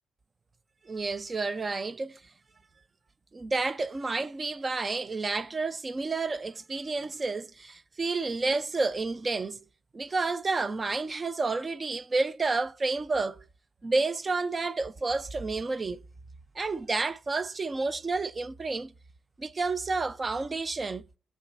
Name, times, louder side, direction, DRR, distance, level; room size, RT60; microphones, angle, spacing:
voice 1, 0.9-2.2 3.3-9.6 9.9-13.4 13.8-16.0 16.6-18.9 19.4-21.1, right 3 dB, 30° right, 0.6 m, -30 dB
20.5 x 7.6 x 2.6 m
cardioid pair, 90°, 0 cm